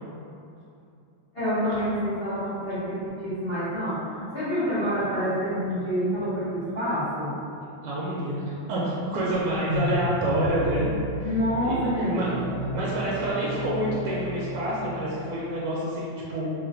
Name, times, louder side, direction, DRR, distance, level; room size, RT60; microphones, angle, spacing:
voice 1, 1.3-7.3 11.2-12.3, equal, 55° left, -15 dB, 0.6 m, -27 dB
voice 2, 7.8-10.9 11.2-11.3 11.6-12.3 12.7-16.5, right 1 dB, 75° right, -6 dB, 1.0 m, -28 dB
sound 1, 9.0-15.3, equal, 40° right, 0.8 m, -33 dB
3.1 x 2.9 x 2.5 m, 2.7 s
omnidirectional pair, 2.2 m